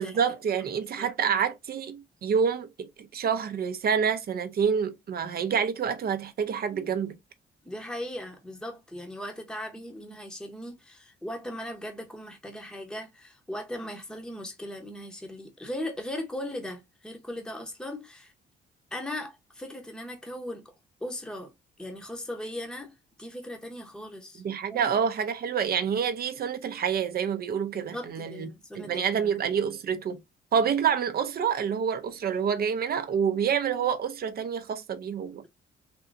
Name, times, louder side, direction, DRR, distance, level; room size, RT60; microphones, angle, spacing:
voice 1, 0.0-7.2 24.4-28.5 28.7-30.2 30.5-35.5, right 7 dB, 50° right, 0.6 m, -27 dB
voice 2, 1.0-1.4 7.6-18.3 18.9-20.7 21.0-21.5 21.8-24.4 24.7-24.9 27.7-29.4, left 1 dB, 5° left, 0.8 m, -38 dB
3.4 x 2.7 x 2.5 m
cardioid pair, 90°, 20 cm